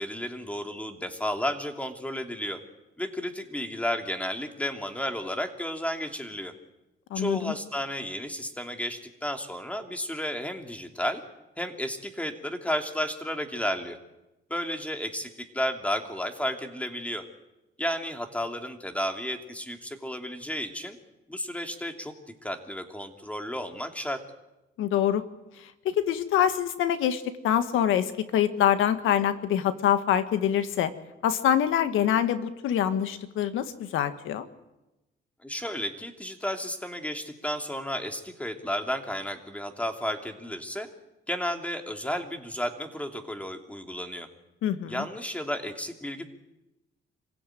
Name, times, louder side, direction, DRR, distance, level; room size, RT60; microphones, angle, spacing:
voice 1, 0.0-2.6 3.0-6.5 7.1-11.2 11.6-14.0 14.5-17.2 17.8-21.0 21.3-22.1 22.4-24.2 35.4-40.9 41.3-44.3 44.9-46.3, equal, 5° left, 5 dB, 2.9 m, -32 dB
voice 2, 7.1-7.5 24.8-25.2 25.6-30.9 31.2-34.5 44.6-45.0, left 10 dB, 85° left, 11 dB, 1.6 m, -25 dB
25.5 x 16.5 x 9.1 m, 0.99 s
cardioid pair, 90°, 20 cm